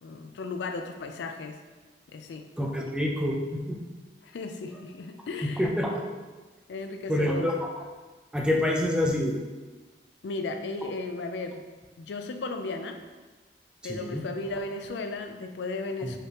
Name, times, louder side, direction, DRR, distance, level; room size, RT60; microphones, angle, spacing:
voice 1, 0.0-1.6 2.1-2.4 4.2-5.7 6.7-7.5 10.2-11.6 12.0-13.0 13.8-16.2, left 3 dB, 75° left, 5 dB, 0.4 m, -35 dB
voice 2, 2.6-3.8 5.6-5.9 7.1-7.5 8.3-9.4 13.9-14.2 16.0-16.1, left 1 dB, 5° right, -1 dB, 0.4 m, -27 dB
4.9 x 3.2 x 2.9 m, 1.3 s
head